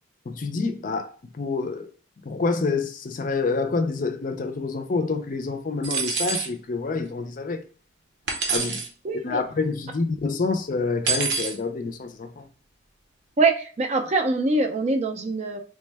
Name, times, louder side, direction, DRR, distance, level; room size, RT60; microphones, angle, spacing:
voice 1, 0.3-1.9 2.3-7.6 8.5-8.8 9.2-12.4, left 4 dB, 45° left, 0.4 m, -27 dB
sound 1, 5.8-6.5 8.3-8.9 11.1-11.6, right 5 dB, 60° right, 0.7 m, -26 dB
voice 2, 9.0-9.4 13.4-15.6, right 3 dB, 35° right, 0.4 m, -23 dB
3.3 x 2.2 x 3.3 m
head